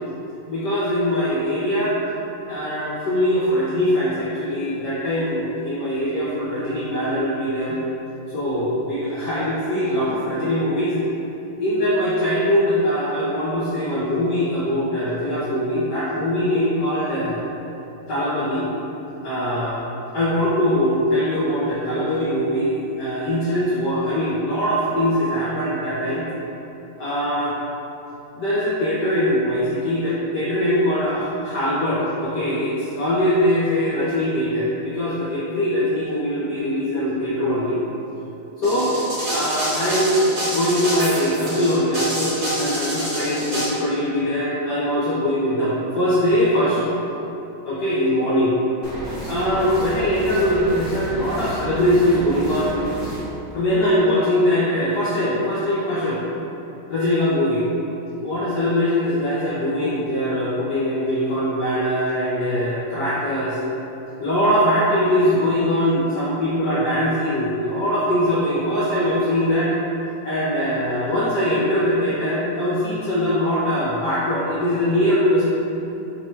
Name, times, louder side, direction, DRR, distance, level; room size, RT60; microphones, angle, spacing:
voice 1, 0.5-2.0 2.4-7.8 8.3-11.0 11.6-17.4 18.1-18.7 19.2-19.8 20.1-26.2 27.0-27.6 28.3-37.8 38.6-39.0 39.3-40.2 40.4-47.0 47.6-48.5 49.2-52.7 53.5-56.2 56.9-57.6 58.2-63.6 64.2-69.7 70.2-75.4, equal, 65° left, -9 dB, 1.2 m, -22 dB
sound 1, 38.6-43.7, right 1 dB, 70° right, 2.1 m, -26 dB
sound 2, 48.8-53.2, right 1 dB, 45° right, 1.1 m, -32 dB
4.3 x 2.1 x 4.3 m, 2.9 s
omnidirectional pair, 2.2 m